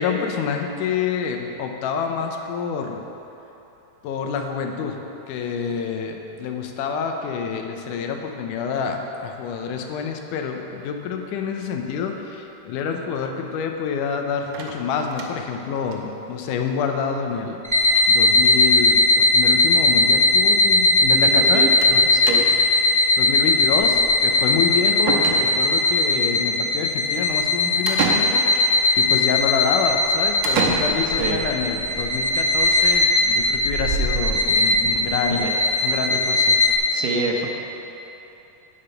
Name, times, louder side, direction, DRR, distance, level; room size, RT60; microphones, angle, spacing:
voice 1, 0.0-3.0 4.0-5.0 5.3-17.6 18.1-22.0 23.2-35.4 35.8-36.6, left 6 dB, 80° left, 4 dB, 2.3 m, -27 dB
sound 1, 14.5-15.6 15.9-16.0 16.3-16.4 16.6-16.7 17.9-18.1 18.4-18.7 19.6-19.7 20.0-20.1 21.8-22.0 22.3-22.7 24.5-24.6 25.1-25.8 27.9-28.7 30.4-31.3, right 5 dB, 75° right, 2.1 m, -28 dB
sound 2, 17.6-36.8, left 2 dB, 30° right, 0.5 m, -19 dB
voice 2, 21.3-21.7 22.1-22.4 31.1-31.4 35.3-35.5 36.9-37.5, right 4 dB, 90° right, 1 dB, 2.6 m, -26 dB
8.8 x 8.5 x 5.7 m, 3.0 s
omnidirectional pair, 3.7 m